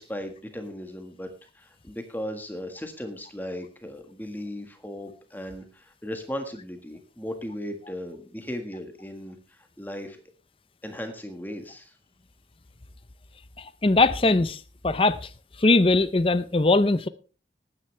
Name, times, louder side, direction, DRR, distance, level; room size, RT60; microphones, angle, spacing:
voice 1, 0.0-10.2 10.8-11.9, equal, 10° left, 1.6 m, -37 dB
voice 2, 13.6-15.3 15.6-17.1, left 2 dB, 30° left, 0.6 m, -21 dB
19.0 x 9.8 x 3.3 m
head